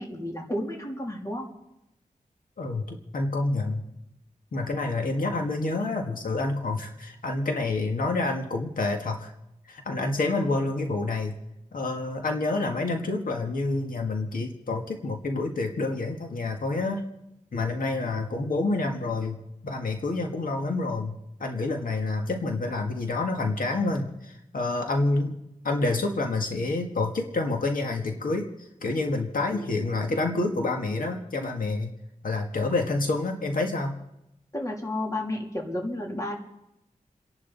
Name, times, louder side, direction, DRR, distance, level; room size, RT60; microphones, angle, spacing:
voice 1, 0.0-1.5 34.5-36.4, left 1 dB, 25° left, -1 dB, 3.1 m, -31 dB
voice 2, 2.6-3.8 4.5-9.3 9.7-11.3 11.7-17.0 17.5-19.4 19.6-25.4 25.6-31.9 32.2-34.0, left 2 dB, 85° left, 3 dB, 1.9 m, -28 dB
29.5 x 11.0 x 4.1 m, 0.87 s
wide cardioid pair, 120°, 14 cm